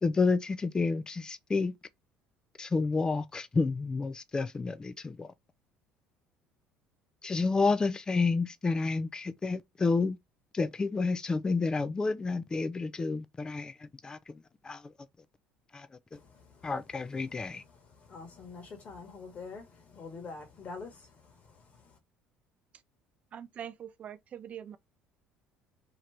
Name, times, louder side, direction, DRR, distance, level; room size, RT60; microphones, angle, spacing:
voice 1, 0.0-1.7 2.6-5.3 7.2-10.2 10.5-14.9 15.7-16.2 16.6-17.6, left 4 dB, 20° left, 0.5 m, -30 dB
voice 2, 16.1-16.7 17.7-22.0, left 4 dB, 40° left, 1.4 m, -46 dB
voice 3, 23.3-24.8, right 9 dB, 45° right, 0.4 m, -43 dB
3.0 x 2.5 x 3.2 m
supercardioid pair, 90°, 3 cm